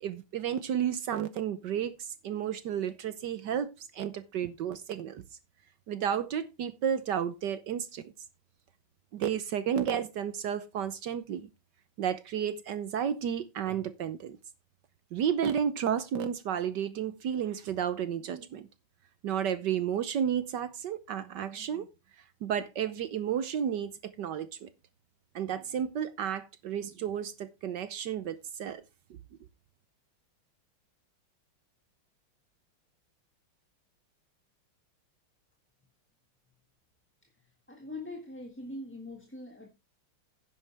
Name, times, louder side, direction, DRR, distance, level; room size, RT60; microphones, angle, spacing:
voice 1, 0.0-5.2 5.9-8.1 9.1-11.5 12.0-14.4 15.1-18.7 19.2-21.9 22.4-24.7 25.3-28.8, right 9 dB, 65° right, 1.3 m, -32 dB
voice 2, 37.7-39.7, left 2 dB, 5° left, 1.4 m, -42 dB
11.0 x 9.9 x 3.4 m
omnidirectional pair, 2.3 m